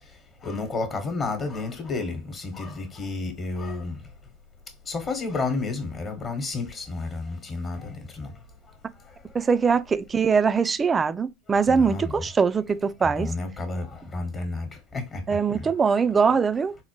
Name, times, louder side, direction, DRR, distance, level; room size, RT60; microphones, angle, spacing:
voice 1, 0.4-4.0 4.9-8.3 11.7-12.3 13.0-15.7, left 3 dB, 30° left, 1.0 m, -31 dB
voice 2, 9.3-13.3 15.3-16.8, right 5 dB, 25° right, 0.3 m, -22 dB
4.1 x 2.1 x 2.9 m
hypercardioid pair, 85°, 0 cm